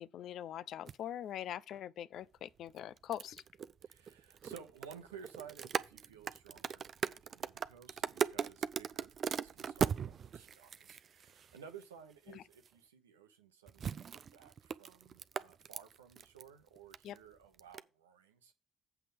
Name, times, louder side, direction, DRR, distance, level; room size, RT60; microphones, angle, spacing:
voice 1, 0.0-3.4 12.3-12.4 17.0-17.2, left 11 dB, 60° left, 0.4 m, -43 dB
sound 1, 0.9-1.0 2.7-11.8 12.5-12.7 13.7-16.5 16.8-17.2 17.6-17.8, right 7 dB, 50° right, 0.4 m, -39 dB
voice 2, 3.8-18.5, right 7 dB, 85° right, 0.9 m, -55 dB
7.9 x 5.8 x 5.1 m
figure-of-eight pair, 45°, 0 cm